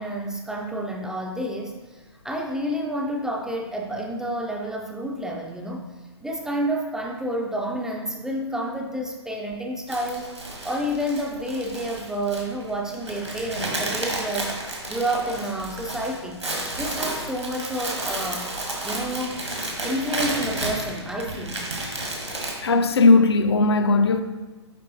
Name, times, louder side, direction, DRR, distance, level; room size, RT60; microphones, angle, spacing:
voice 1, 0.0-5.9 6.2-10.3 10.6-14.6 14.9-16.4 16.7-18.5 18.8-19.5 19.8-21.6, right 1 dB, 5° right, 0.3 m, -29 dB
sound 1, 9.9-22.5, right 2 dB, 85° right, 1.4 m, -31 dB
voice 2, 22.6-24.2, left 3 dB, 65° left, 0.5 m, -17 dB
9.5 x 3.6 x 2.7 m
figure-of-eight pair, 115°, 15 cm